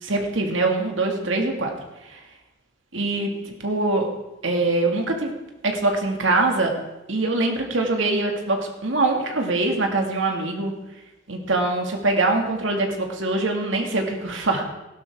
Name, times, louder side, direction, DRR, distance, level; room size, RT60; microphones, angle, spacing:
voice 1, 0.0-1.7 2.0-2.2 2.9-4.1 4.4-5.3 5.6-6.7 7.1-10.7 11.3-14.6, right 2 dB, 85° right, 2 dB, 2.1 m, -23 dB
16.5 x 11.5 x 3.6 m, 0.99 s
head